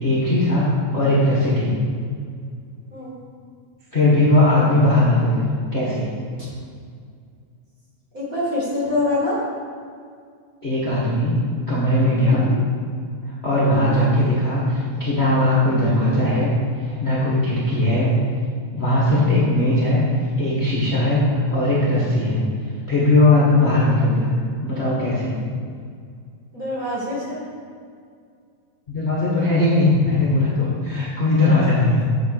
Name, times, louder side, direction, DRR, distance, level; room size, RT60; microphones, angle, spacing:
voice 1, 0.0-1.7 3.9-5.5 5.7-6.1 10.6-11.3 11.7-12.4 13.4-16.5 16.8-18.1 18.7-20.0 20.4-21.2 21.5-22.4 22.9-24.3 24.6-25.4 28.9-32.0, left 1 dB, 30° left, -7 dB, 1.4 m, -19 dB
voice 2, 8.1-9.4 12.3-12.6 13.7-13.9 26.5-27.4, left 2 dB, 30° right, -8 dB, 2.6 m, -25 dB
9.9 x 5.2 x 6.6 m, 2.2 s
omnidirectional pair, 3.4 m